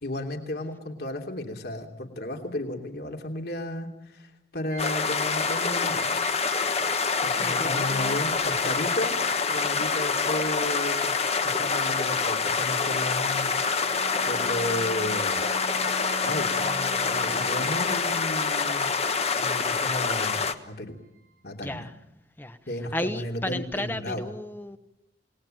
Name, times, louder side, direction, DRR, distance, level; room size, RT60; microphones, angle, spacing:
voice 1, 0.0-6.1 7.2-9.2 9.5-11.1 11.4-15.4 16.2-18.9 19.4-21.0 21.4-21.9 22.7-24.3, left 1 dB, 60° left, 3 dB, 3.1 m, -34 dB
sound 1, 4.7-19.0 19.3-20.3 20.6-20.7 21.2-21.3, right 6 dB, 90° right, 3.7 m, -46 dB
sound 2, 4.8-20.5, left 5 dB, 35° left, 1.3 m, -26 dB
voice 2, 7.4-8.2 21.6-21.9 22.4-22.6 22.9-24.8, left 1 dB, 10° left, 9 dB, 1.1 m, -33 dB
Bowed string instrument, 13.8-18.2, right 1 dB, 70° right, 1.3 m, -42 dB
28.0 x 19.5 x 9.1 m, 0.89 s
head